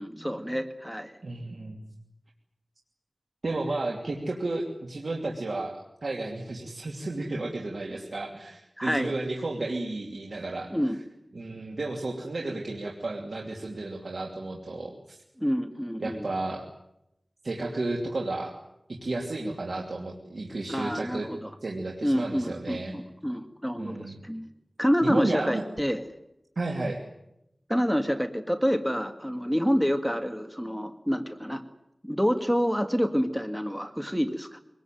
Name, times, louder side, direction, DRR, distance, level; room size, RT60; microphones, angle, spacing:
voice 1, 0.0-1.1 8.8-9.1 10.7-11.0 15.4-16.3 20.7-21.5 22.0-24.5 24.8-26.0 27.7-31.6 32.0-34.6, equal, ahead, 7 dB, 2.0 m, -28 dB
voice 2, 1.2-1.8 3.4-10.7 11.3-15.2 16.0-16.6 17.4-18.5 18.9-21.3 21.6-22.9 23.8-24.2 25.0-25.6 26.6-27.0, right 2 dB, 85° right, 0 dB, 2.9 m, -32 dB
24.5 x 20.0 x 9.3 m, 0.85 s
wide cardioid pair, 50°, 0 cm